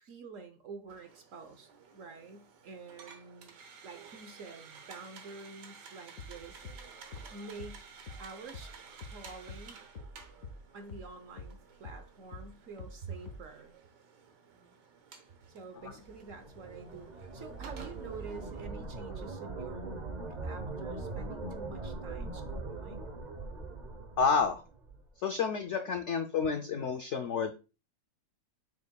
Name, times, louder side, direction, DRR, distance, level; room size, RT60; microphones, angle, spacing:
voice 1, 0.0-3.5 3.8-6.7 7.3-7.8 8.2-9.8 10.7-13.8 15.5-23.0, right 4 dB, 60° right, 8 dB, 0.9 m, -48 dB
sound 1, 0.9-18.6, right 6 dB, 75° right, 1.7 m, -54 dB
sound 2, 6.2-11.1 11.4-13.6, left 3 dB, 55° left, 1.2 m, -46 dB
sound 3, 15.8-25.1, right 3 dB, 40° right, 0.6 m, -41 dB
voice 2, 24.2-24.6 25.2-27.5, left 5 dB, 80° left, 7 dB, 0.6 m, -30 dB
7.1 x 6.3 x 2.2 m, 0.31 s
omnidirectional pair, 1.9 m